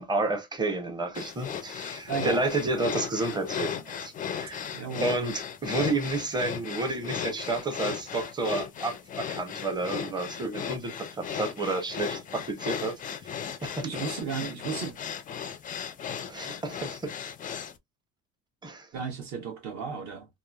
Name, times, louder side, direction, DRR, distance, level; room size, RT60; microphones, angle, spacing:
voice 1, 0.0-4.7 5.0-12.9 13.2-13.3 13.6-14.0 16.3-17.2 18.6-18.9, right 2 dB, 15° right, 0.6 m, -31 dB
sound 1, 1.2-17.8, left 8 dB, 25° left, 0.3 m, -36 dB
voice 2, 2.1-2.4 4.7-5.2 13.8-14.9 18.9-20.3, right 6 dB, 55° right, 1.0 m, -34 dB
3.0 x 2.4 x 2.3 m
cardioid pair, 145°, 32 cm